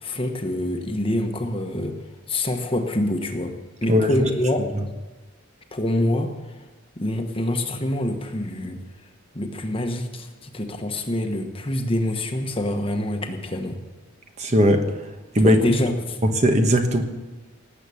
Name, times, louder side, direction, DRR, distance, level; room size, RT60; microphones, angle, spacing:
voice 1, 0.0-2.0 2.3-3.5 3.8-4.7 5.7-6.3 7.0-8.8 9.3-13.8 15.4-16.2, left 1 dB, 25° left, 5 dB, 1.2 m, -25 dB
voice 2, 3.9-4.3 14.4-14.8 15.3-15.6 16.2-17.0, equal, 35° right, 5 dB, 1.3 m, -18 dB
18.5 x 8.2 x 7.1 m, 1.2 s
head